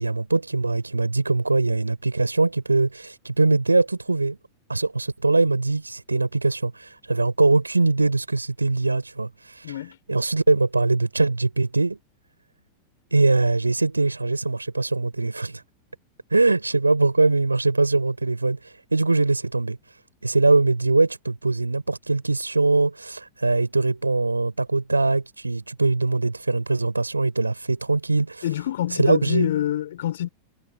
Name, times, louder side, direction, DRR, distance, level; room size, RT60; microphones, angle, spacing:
voice 1, 0.0-4.4 4.7-9.8 10.1-12.0 13.1-15.6 16.3-20.0 20.2-28.4 29.0-29.5, right 3 dB, 80° right, 4.4 m, -22 dB
voice 2, 9.6-10.0 28.4-30.3, left 12 dB, 60° left, 5.6 m, -26 dB
figure-of-eight pair, 90°, 0 cm